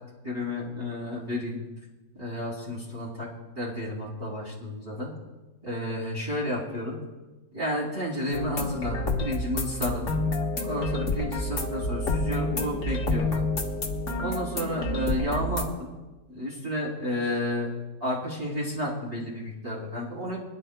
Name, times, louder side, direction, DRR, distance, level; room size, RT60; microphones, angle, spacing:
voice 1, 0.2-1.6 2.1-3.3 3.5-5.1 5.6-7.0 7.5-10.1 10.6-13.5 14.2-15.9 16.3-17.7 18.0-20.4, left 1 dB, 20° right, -6 dB, 2.9 m, -31 dB
sound 1, 8.3-15.7, left 2 dB, 45° left, 1.5 m, -29 dB
24.0 x 11.0 x 2.2 m, 1.2 s
omnidirectional pair, 1.9 m